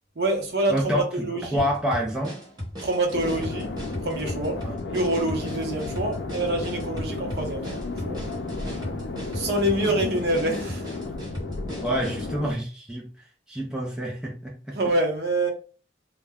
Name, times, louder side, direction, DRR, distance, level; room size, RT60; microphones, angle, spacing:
voice 1, 0.2-1.6 2.8-3.7 4.0-4.6 4.9-8.2 9.3-10.8 14.7-15.5, right 1 dB, 60° right, 0.7 m, -26 dB
voice 2, 0.7-2.3 4.6-4.8 9.8-10.0 11.8-13.1 13.5-14.8, equal, 5° right, 0.5 m, -28 dB
sound 1, 1.6-12.3, equal, 25° right, 0.9 m, -37 dB
sound 2, 3.1-12.5, left 3 dB, 65° left, 0.4 m, -33 dB
2.2 x 2.1 x 3.4 m
head